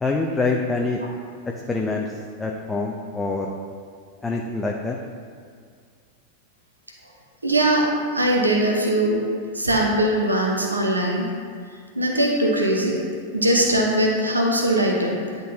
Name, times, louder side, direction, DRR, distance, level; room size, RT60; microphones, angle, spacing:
voice 1, 0.0-1.0 1.7-2.1 2.4-3.5 4.2-5.0, left 3 dB, 10° left, 0 dB, 0.5 m, -25 dB
voice 2, 7.4-7.8 8.1-9.2 9.5-11.2 12.0-13.0 13.3-15.2, right 1 dB, 80° right, 0 dB, 0.8 m, -20 dB
10.0 x 3.9 x 2.8 m, 2.2 s
figure-of-eight pair, 90°, 0 cm